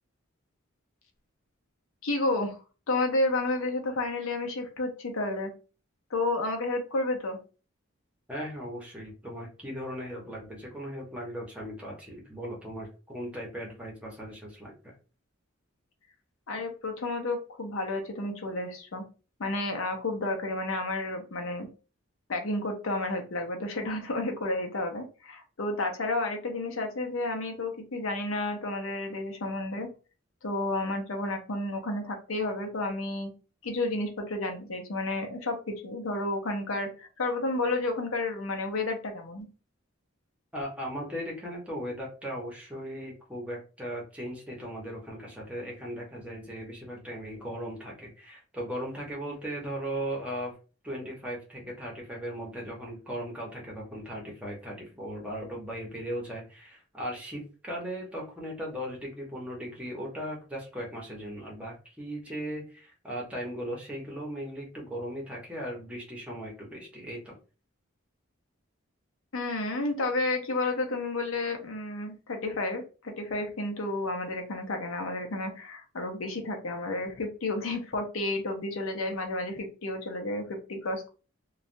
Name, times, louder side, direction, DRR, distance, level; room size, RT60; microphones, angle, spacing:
voice 1, 2.0-2.6 2.9-5.5 6.1-7.4 16.5-19.0 19.4-21.7 22.3-29.9 30.4-33.3 33.6-39.5 69.3-81.1, left 2 dB, 80° left, 4 dB, 0.7 m, -31 dB
voice 2, 8.3-14.9 40.5-50.5 50.8-67.3, equal, 5° right, -3 dB, 0.9 m, -38 dB
3.2 x 2.3 x 2.6 m, 0.34 s
head